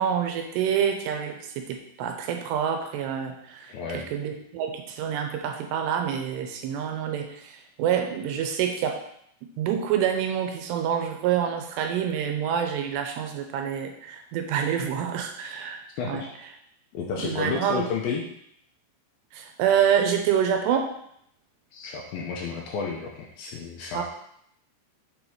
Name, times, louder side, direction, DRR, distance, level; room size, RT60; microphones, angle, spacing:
voice 1, 0.0-9.0 9.6-16.2 17.2-17.9 19.3-20.9 23.9-24.0, right 8 dB, 90° right, 4 dB, 2.9 m, -27 dB
voice 2, 3.7-4.1 16.0-16.3 16.9-18.3 21.7-24.0, left 5 dB, 80° left, -2 dB, 2.2 m, -31 dB
7.3 x 4.0 x 4.7 m, 0.70 s
omnidirectional pair, 4.9 m